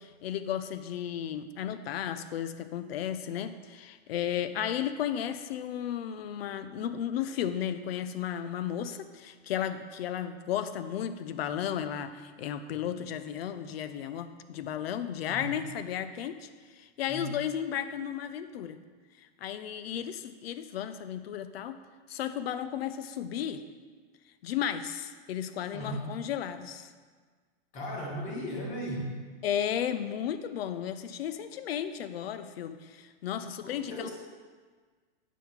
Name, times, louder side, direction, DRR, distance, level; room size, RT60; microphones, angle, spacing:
voice 1, 0.0-18.8 19.4-21.8 22.1-23.6 24.4-26.9 29.4-34.1, left 9 dB, 75° left, 11 dB, 0.6 m, -34 dB
voice 2, 15.3-15.6 17.1-17.3 25.7-26.2 27.7-29.1 33.6-34.1, equal, 25° left, -1 dB, 1.4 m, -37 dB
8.2 x 3.7 x 5.8 m, 1.5 s
supercardioid pair, 170°, 30 cm